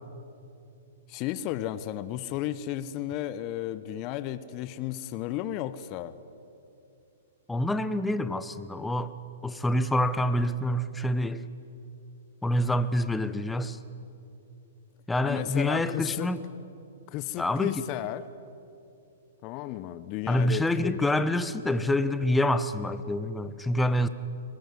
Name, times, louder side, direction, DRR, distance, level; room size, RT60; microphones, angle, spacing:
voice 1, 1.1-6.1 15.2-16.3 17.1-18.2 19.4-21.0, left 13 dB, 35° left, 15 dB, 1.0 m, -33 dB
voice 2, 7.5-9.1 9.4-11.4 12.4-13.8 15.1-16.4 17.4-17.8 20.3-24.1, left 1 dB, 5° left, 13 dB, 1.0 m, -27 dB
22.5 x 20.0 x 9.7 m, 2.7 s
figure-of-eight pair, 115°, 0 cm